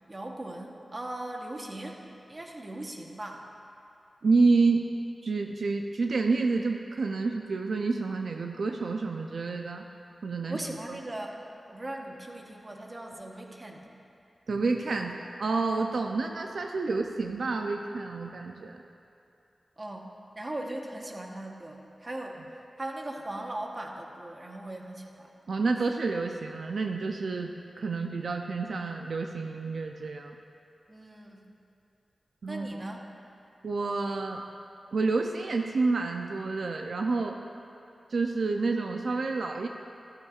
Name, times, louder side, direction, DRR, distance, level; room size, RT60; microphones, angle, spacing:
voice 1, 0.1-2.0 2.3-3.4 10.5-11.4 11.7-13.8 19.8-22.4 22.8-25.3 30.9-31.5 32.5-33.0, right 1 dB, 30° right, 1 dB, 1.1 m, -39 dB
voice 2, 4.2-4.9 5.2-9.8 10.2-11.0 14.5-18.8 25.5-30.4 32.4-32.8 33.6-34.4 34.9-37.4 38.1-39.7, right 3 dB, 80° right, 3 dB, 0.5 m, -29 dB
14.0 x 13.5 x 2.5 m, 2.6 s
wide cardioid pair, 100°, 0 cm